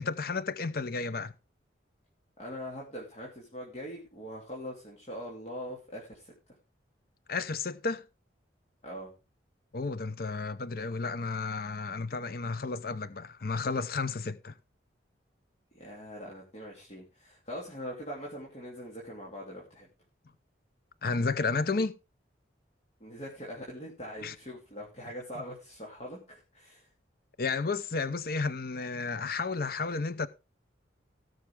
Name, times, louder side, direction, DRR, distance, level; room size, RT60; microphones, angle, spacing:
voice 1, 0.0-1.3 7.3-8.0 9.7-14.6 21.0-22.0 24.2-24.3 27.4-30.3, left 4 dB, 50° left, 0.6 m, -32 dB
voice 2, 2.4-6.3 8.8-9.1 15.7-19.9 23.0-26.9, equal, 35° left, 2.9 m, -42 dB
17.5 x 6.5 x 3.5 m
head